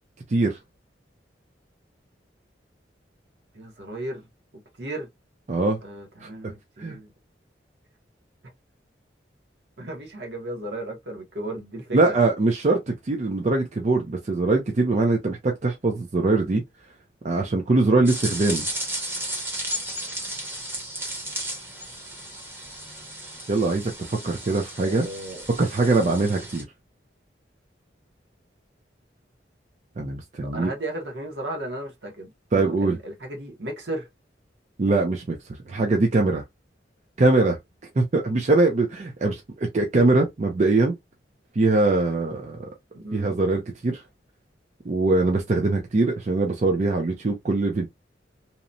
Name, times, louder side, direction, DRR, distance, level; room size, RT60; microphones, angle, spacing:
voice 1, 3.5-4.3 4.5-5.1 5.8-7.1 9.8-12.2 24.8-25.4 30.4-34.1 42.9-43.3, right 1 dB, 70° right, 1.0 m, -35 dB
voice 2, 5.5-5.8 6.2-6.3 6.8-7.0 11.9-16.6 17.2-18.7 23.5-25.1 25.6-26.6 30.0-30.7 32.5-33.0 34.8-35.4 35.7-36.4 37.2-37.6 38.0-40.9 41.6-42.7 43.1-44.0 44.8-47.9, right 2 dB, 40° right, 0.4 m, -22 dB
sound 1, 18.0-26.6, right 1 dB, 15° right, 0.8 m, -34 dB
2.9 x 2.1 x 2.5 m
head